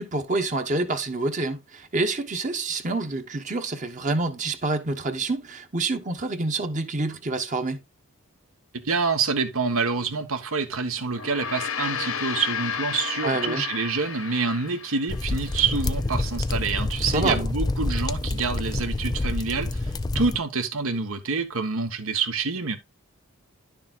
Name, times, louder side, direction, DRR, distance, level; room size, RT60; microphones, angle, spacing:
voice 1, 0.0-7.8 13.2-13.6 17.1-17.5, right 2 dB, 35° right, 1.1 m, -27 dB
voice 2, 8.8-22.8, right 4 dB, 75° right, 1.4 m, -27 dB
Gong, 11.1-15.7, left 7 dB, 75° left, 1.1 m, -32 dB
sound 1, 15.1-20.4, left 2 dB, 20° left, 0.4 m, -27 dB
11.0 x 6.8 x 2.5 m
head